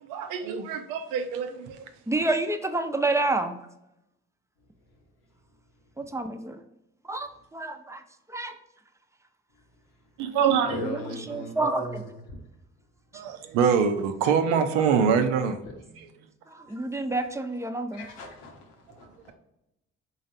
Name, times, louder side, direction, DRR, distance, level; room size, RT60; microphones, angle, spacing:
voice 1, 0.1-1.8 10.2-10.8 13.1-15.6, right 6 dB, 90° right, 8 dB, 0.5 m, -24 dB
voice 2, 2.1-3.6 6.0-6.6 7.1-8.0 8.3-8.5 10.8-11.0 11.3-12.0 16.5-18.0, right 2 dB, 10° right, 7 dB, 0.5 m, -28 dB
voice 3, 10.6-12.0 12.3-12.4 16.7-16.8 17.1-17.2 17.9-19.3, left 1 dB, 85° left, 2 dB, 0.9 m, -38 dB
3.9 x 3.2 x 2.6 m, 0.88 s
supercardioid pair, 55°, 30 cm